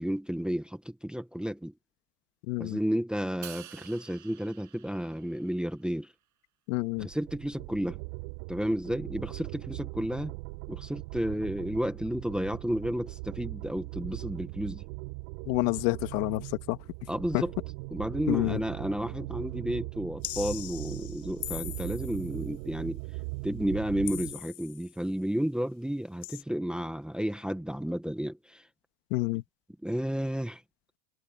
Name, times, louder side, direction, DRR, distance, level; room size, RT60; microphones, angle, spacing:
voice 1, 0.0-1.7 2.6-6.1 7.0-8.0 8.5-10.4 10.7-14.8 17.1-17.5 17.9-23.0 23.4-28.6 29.8-30.6, equal, ahead, 1.1 m, -32 dB
voice 2, 2.5-2.8 6.7-7.1 15.5-16.8 17.3-17.4 18.3-18.6 29.1-29.4, left 21 dB, 70° left, 1.7 m, -28 dB
Crash cymbal, 3.4-5.8, right 14 dB, 35° right, 5.8 m, -49 dB
sound 1, 7.0-24.4, right 29 dB, 70° right, 4.2 m, -40 dB
sound 2, 20.2-22.4 24.1-24.9 26.2-26.4, left 17 dB, 45° left, 5.2 m, -40 dB
cardioid pair, 165°, 49 cm